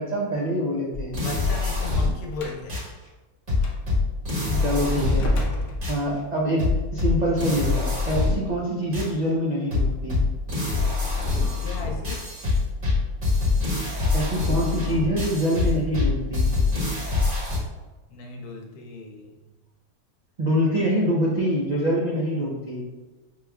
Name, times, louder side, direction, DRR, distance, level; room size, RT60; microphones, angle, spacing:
voice 1, 0.0-1.2 4.4-5.3 5.9-10.2 14.1-16.5 20.4-22.8, equal, 85° right, -4 dB, 0.3 m, -25 dB
sound 1, 0.9-2.3 2.7-2.9 3.5-5.4 5.8-6.0 6.6-8.5 8.9-9.1 9.7-17.6, left 3 dB, 35° right, 1.4 m, -25 dB
voice 2, 1.2-2.9 11.6-12.3 18.1-19.5, left 3 dB, 80° left, 1 dB, 1.2 m, -36 dB
Slam, 2.3-2.6 3.6-3.8 5.1-6.4, left 1 dB, 60° left, 0.9 m, -28 dB
5.4 x 3.0 x 2.3 m, 1.2 s
omnidirectional pair, 1.6 m